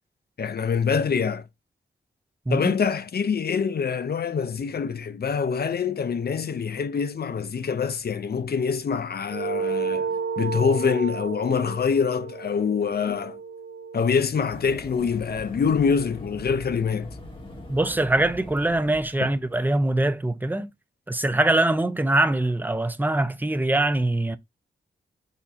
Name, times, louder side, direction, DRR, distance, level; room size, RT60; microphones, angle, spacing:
voice 1, 0.4-1.5 2.5-13.4 13.9-17.2 19.2-19.3, left 6 dB, 55° left, 0.7 m, -25 dB
sound 1, 9.3-14.1, right 5 dB, 85° right, 0.9 m, -32 dB
sound 2, 14.5-19.5, left 1 dB, 25° left, 2.0 m, -41 dB
voice 2, 17.7-20.7 21.1-24.4, right 2 dB, 10° right, 0.5 m, -23 dB
4.3 x 2.7 x 3.5 m
cardioid pair, 65°, 20 cm